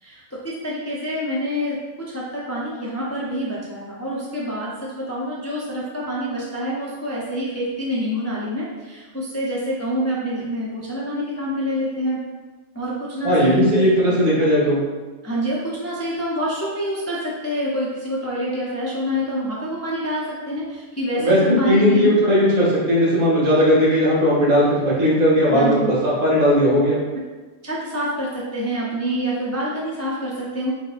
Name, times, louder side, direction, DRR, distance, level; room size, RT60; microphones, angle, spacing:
voice 1, 0.0-1.8 2.1-12.2 12.7-13.9 15.2-22.2 25.5-25.9 27.6-30.7, equal, 20° left, -5 dB, 0.4 m, -26 dB
voice 2, 13.2-14.8 21.1-27.0, equal, 85° right, -7 dB, 2.2 m, -17 dB
4.8 x 4.2 x 2.6 m, 1.3 s
omnidirectional pair, 1.5 m